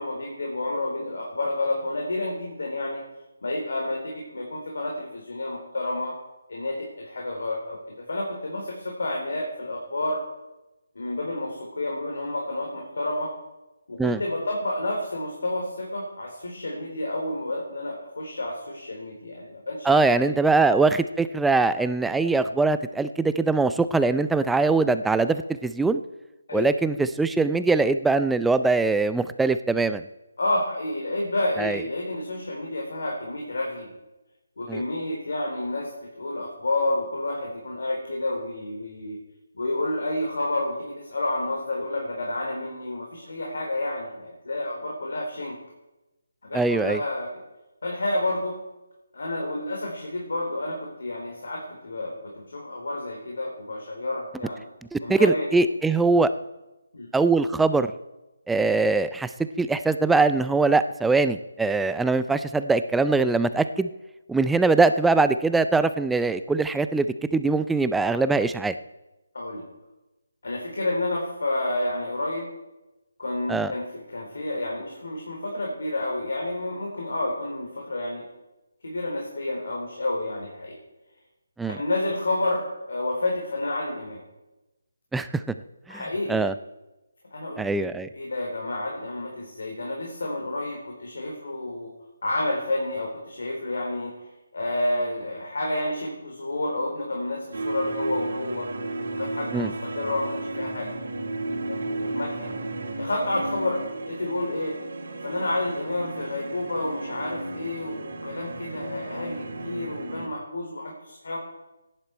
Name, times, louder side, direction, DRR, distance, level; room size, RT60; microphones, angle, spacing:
voice 1, 0.0-3.0 3.4-6.2 6.5-10.2 11.0-13.3 13.9-20.4 26.5-26.6 30.4-33.9 34.6-39.2 39.5-45.6 46.4-47.3 47.8-48.6 49.1-54.7 55.0-55.5 56.9-57.1 69.3-69.7 70.4-72.5 73.2-78.3 78.8-80.8 81.7-84.2 85.9-86.5 87.3-87.9 88.1-91.9 92.2-94.1 94.5-98.7 99.2-100.9 101.7-102.6 103.0-104.8 105.2-111.4, left 2 dB, 75° left, -1 dB, 3.7 m, -30 dB
voice 2, 19.9-26.0 26.5-30.0 31.6-31.8 34.7-34.8 46.5-47.0 54.9-56.3 57.1-57.9 58.5-59.3 59.6-63.9 64.3-67.1 67.3-68.7 73.5-73.7 81.6-81.8 85.1-85.3 85.9-86.0 86.3-86.5 87.6-88.1 99.5-99.7, right 3 dB, 5° right, 11 dB, 0.4 m, -22 dB
sound 1, 97.5-110.3, right 2 dB, 65° right, 2.7 m, -34 dB
17.0 x 10.5 x 4.5 m, 1.0 s
hypercardioid pair, 165°, 0 cm